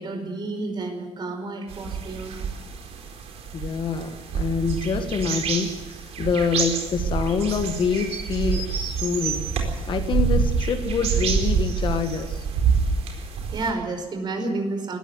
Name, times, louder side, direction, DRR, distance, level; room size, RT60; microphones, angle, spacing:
voice 1, 0.0-2.3 13.2-13.3 13.5-15.0, right 2 dB, 45° right, 5 dB, 5.1 m, -30 dB
sound 1, 1.7-13.7, right 5 dB, 75° right, 4.3 m, -27 dB
voice 2, 3.5-12.4, left 5 dB, 50° left, 7 dB, 1.8 m, -26 dB
19.5 x 14.5 x 9.7 m, 1.3 s
cardioid pair, 125°, 11 cm